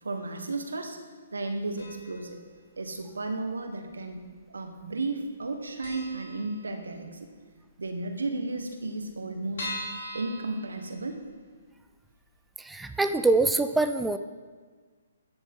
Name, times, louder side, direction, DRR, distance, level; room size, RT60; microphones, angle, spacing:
voice 1, 0.0-1.0 1.3-2.4 2.8-7.3 7.8-9.7 10.1-11.2, right 2 dB, 85° right, 5 dB, 1.4 m, -34 dB
sound 1, 1.8-2.3 2.6-2.7 3.6-4.3 4.6-4.7 5.0-5.1 5.5-5.6 5.8-7.1 7.5-7.6 7.9-8.0 8.2-8.3 8.8-11.4 11.9-12.0 12.3-12.4, left 1 dB, 65° left, 2.9 m, -40 dB
voice 2, 12.6-14.2, right 3 dB, 5° right, 8 dB, 0.3 m, -24 dB
13.5 x 7.0 x 3.8 m, 1.5 s
hypercardioid pair, 135°, 0 cm